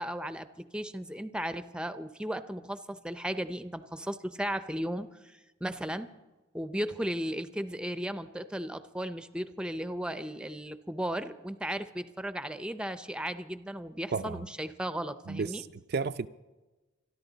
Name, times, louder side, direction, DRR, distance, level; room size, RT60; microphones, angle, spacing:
voice 1, 0.0-6.1 6.5-15.6, equal, 5° right, 0.6 m, -35 dB
voice 2, 14.1-14.5 15.3-16.3, right 5 dB, 55° right, 0.4 m, -33 dB
26.5 x 11.0 x 4.0 m
head